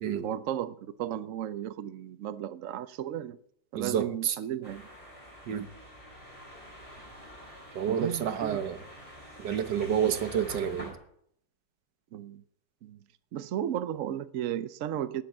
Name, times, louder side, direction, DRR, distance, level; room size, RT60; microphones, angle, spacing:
voice 1, 0.2-3.4 3.7-4.9 7.9-8.6 12.1-12.4 12.8-13.0 13.3-15.2, right 11 dB, 60° right, 0.9 m, -34 dB
voice 2, 3.7-4.4 5.5-5.7 7.7-8.8 9.4-11.0, right 8 dB, 85° right, 1.7 m, -29 dB
sound 1, 4.6-10.9, equal, 20° left, 6.1 m, -47 dB
18.0 x 7.0 x 7.3 m
omnidirectional pair, 1.8 m